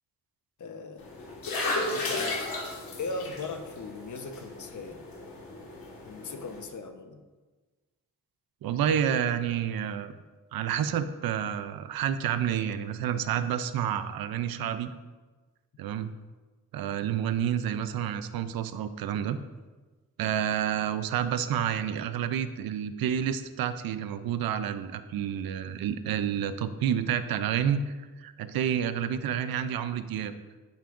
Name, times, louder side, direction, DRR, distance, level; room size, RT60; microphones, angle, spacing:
voice 1, 0.6-1.1 1.9-2.5 3.0-5.0 6.1-7.2, left 4 dB, 55° left, 6 dB, 1.0 m, -38 dB
sound 1, 1.0-6.6, left 2 dB, 90° left, 1.6 m, -35 dB
voice 2, 8.6-10.1 10.5-14.9 15.8-16.1 16.7-19.4 20.2-30.3, right 9 dB, 90° right, 12 dB, 0.5 m, -29 dB
13.0 x 5.7 x 2.5 m, 1.3 s
cardioid pair, 60°, 35 cm